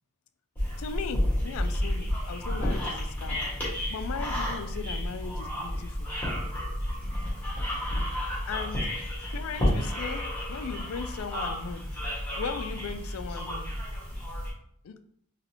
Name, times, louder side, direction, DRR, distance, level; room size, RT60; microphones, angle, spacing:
sound 1, 0.6-14.5, left 1 dB, 10° left, 1.5 m, -31 dB
voice 1, 0.8-3.4 3.9-6.1 8.5-8.9 9.3-11.9 12.4-13.7 14.8-15.0, left 5 dB, 75° left, 10 dB, 0.4 m, -37 dB
4.0 x 3.1 x 2.8 m, 0.69 s
head